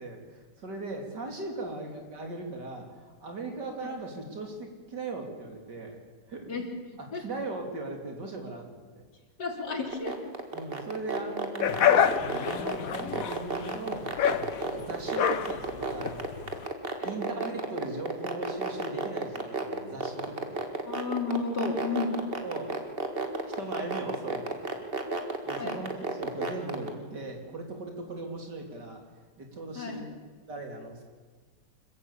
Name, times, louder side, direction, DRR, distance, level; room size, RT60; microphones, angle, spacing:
voice 1, 0.0-6.0 6.3-6.6 7.0-9.0 10.5-14.1 14.6-16.3 17.0-20.7 22.2-22.8 23.6-24.6 25.5-29.0 29.4-30.2 30.5-31.0, right 2 dB, 80° right, 2 dB, 4.0 m, -39 dB
voice 2, 9.4-10.2 17.0-17.1 20.9-22.1 25.6-25.7 29.8-30.0, left 4 dB, 75° left, 2 dB, 3.7 m, -32 dB
sound 1, 9.9-26.9, right 3 dB, 35° right, 2.1 m, -31 dB
sound 2, 11.6-16.7, left 9 dB, 60° left, 1.3 m, -27 dB
26.0 x 14.5 x 8.6 m, 1.5 s
omnidirectional pair, 1.8 m